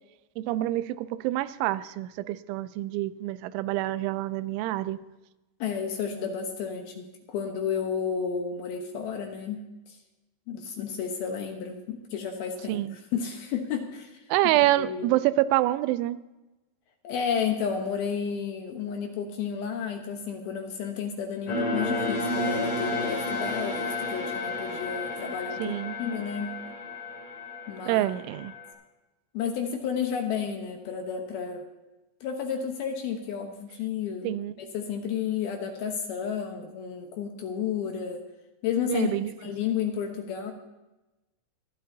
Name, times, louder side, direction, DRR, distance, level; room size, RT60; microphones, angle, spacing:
voice 1, 0.4-5.0 12.7-13.0 14.3-16.2 25.6-26.0 27.9-28.5 34.2-34.5 38.9-39.3, right 15 dB, 90° right, 15 dB, 3.0 m, -27 dB
voice 2, 5.6-9.6 9.9-10.0 10.5-14.2 14.8-15.1 17.0-26.5 27.7-28.1 29.3-31.7 32.2-34.3 34.6-38.2 38.6-39.1 39.4-40.5, left 7 dB, 70° left, 3 dB, 2.5 m, -32 dB
sound 1, 21.5-28.7, left 2 dB, 40° left, 4.6 m, -31 dB
26.0 x 11.5 x 2.8 m, 1.0 s
omnidirectional pair, 5.3 m